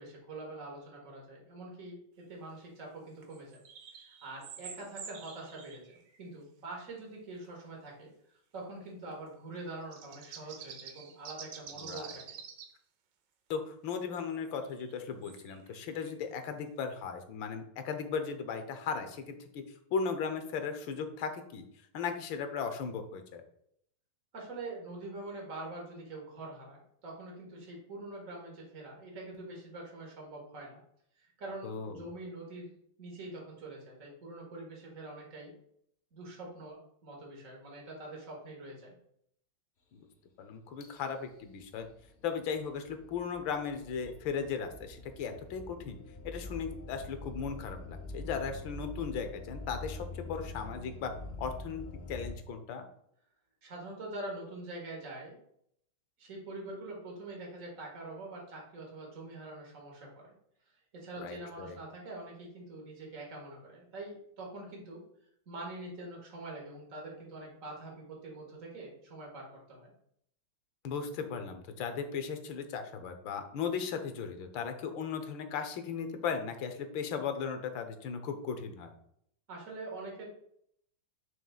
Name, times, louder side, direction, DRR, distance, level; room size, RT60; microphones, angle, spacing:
voice 1, 0.0-3.6 3.9-8.1 8.5-12.4 24.3-30.8 31.2-32.7 33.0-35.5 36.1-39.0 53.6-55.4 56.2-60.3 60.9-65.0 65.5-69.9 79.5-80.3, right 2 dB, 45° right, -1 dB, 2.0 m, -45 dB
sound 1, 3.2-6.3 7.4-7.5 9.6-12.7 14.4-16.3, right 7 dB, 70° right, 1.4 m, -48 dB
voice 2, 11.7-12.1 13.5-19.6 19.9-21.6 21.9-23.4 31.6-32.0 39.9-40.1 40.4-41.9 42.2-46.0 46.2-51.1 51.4-52.9 61.2-61.8 70.8-78.9, left 6 dB, 80° left, 7 dB, 1.6 m, -37 dB
sound 2, 40.8-52.4, left 2 dB, 45° left, 1.0 m, -45 dB
6.5 x 6.4 x 2.4 m, 0.70 s
omnidirectional pair, 2.1 m